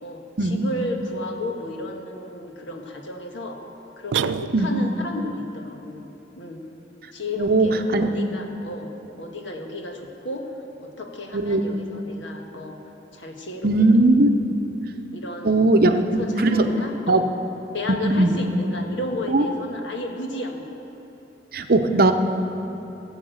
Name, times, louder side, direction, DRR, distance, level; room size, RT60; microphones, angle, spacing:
voice 1, 0.0-3.6 4.0-6.1 6.4-6.6 7.1-10.5 10.8-12.8 13.1-13.7 14.0-14.1 15.1-15.8 16.2-17.3 17.7-20.8 21.7-21.9, left 1 dB, 85° left, 3 dB, 1.5 m, -33 dB
sound 1, 4.1-5.0, right 7 dB, 90° right, 0.4 m, -27 dB
voice 2, 7.4-7.7 7.9-8.1 11.3-11.6 13.6-14.3 15.4-16.0 16.4-16.7 17.1-17.2 18.0-18.3 19.3-19.4 21.5-22.1, right 2 dB, 55° right, 7 dB, 0.8 m, -18 dB
17.0 x 7.3 x 7.9 m, 3.0 s
head